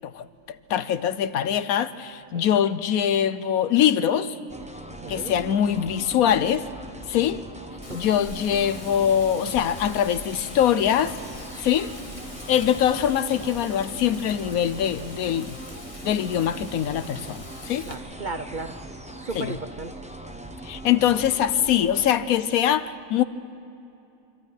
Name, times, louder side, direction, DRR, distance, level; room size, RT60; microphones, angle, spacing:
voice 1, 0.0-4.4 5.1-6.7 7.1-7.4 7.9-11.2 11.6-11.9 12.5-15.6 16.0-17.9 19.3-19.5 20.7-23.2, left 9 dB, 85° left, 14 dB, 1.2 m, -23 dB
sound 1, 4.5-22.1, right 1 dB, 5° right, 0.8 m, -40 dB
voice 2, 5.0-5.3 7.9-8.0 17.8-18.7 19.3-19.9, right 3 dB, 45° right, 7 dB, 0.7 m, -34 dB
Wind, 7.8-17.9, left 1 dB, 25° left, 1.7 m, -43 dB
26.0 x 13.0 x 9.2 m, 2.8 s
omnidirectional pair, 1.5 m